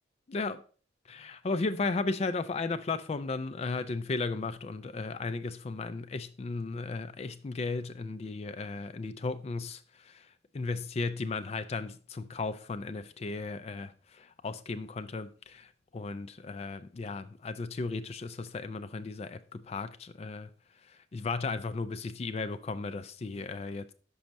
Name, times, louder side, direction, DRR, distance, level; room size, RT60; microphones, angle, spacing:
voice 1, 0.3-0.6 1.1-10.2 10.5-20.5 21.1-23.9, left 3 dB, 35° left, 0.4 m, -35 dB
6.2 x 5.3 x 4.4 m
head